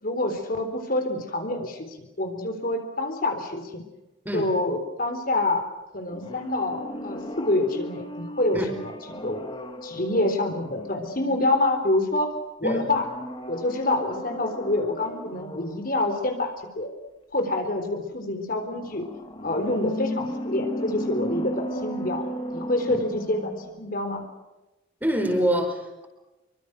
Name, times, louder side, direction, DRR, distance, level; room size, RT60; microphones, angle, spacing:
voice 1, 0.0-1.9 2.2-3.8 4.3-5.6 5.9-8.9 9.2-9.4 9.8-12.3 12.6-13.0 13.5-16.9 17.3-19.1 19.4-22.2 22.5-24.3, left 2 dB, 50° left, 5 dB, 3.8 m, -27 dB
sound 1, 6.1-11.8 12.9-15.9 18.7-23.9 24.2-24.3, equal, 25° left, 2.6 m, -35 dB
voice 2, 25.0-26.1, equal, 10° right, 4 dB, 4.8 m, -26 dB
26.5 x 24.5 x 6.4 m, 1.0 s
head